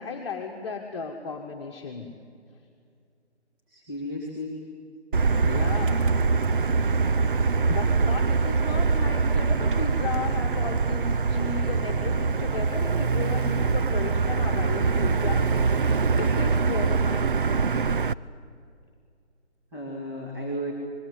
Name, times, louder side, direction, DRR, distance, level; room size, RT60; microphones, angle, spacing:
voice 1, 0.0-2.1 5.4-6.1 7.5-17.6, left 5 dB, 25° left, -1 dB, 1.7 m, -35 dB
voice 2, 3.7-4.6 19.7-20.7, equal, 20° right, -3 dB, 2.6 m, -33 dB
Motor vehicle (road), 5.1-18.1, right 4 dB, 50° right, 0.6 m, -23 dB
29.5 x 21.5 x 8.4 m, 2.3 s
figure-of-eight pair, 160°, 35 cm